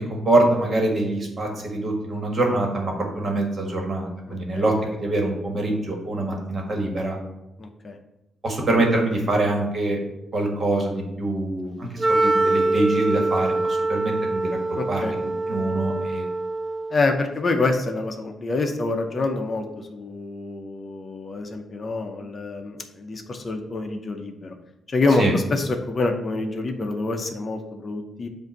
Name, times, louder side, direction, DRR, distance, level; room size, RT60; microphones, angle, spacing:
voice 1, 0.0-7.2 8.4-10.0 10.3-14.6 14.9-15.1 15.5-16.2 25.2-25.3, right 2 dB, 40° right, 1 dB, 1.5 m, -24 dB
voice 2, 4.3-4.6 7.6-8.0 14.8-15.1 16.9-24.5 24.9-28.3, left 3 dB, 35° left, 4 dB, 0.7 m, -26 dB
Wind instrument woodwind instrument, 12.0-17.1, right 2 dB, 25° right, 0.4 m, -24 dB
7.7 x 2.6 x 5.8 m, 0.93 s
cardioid pair, 110°, 0 cm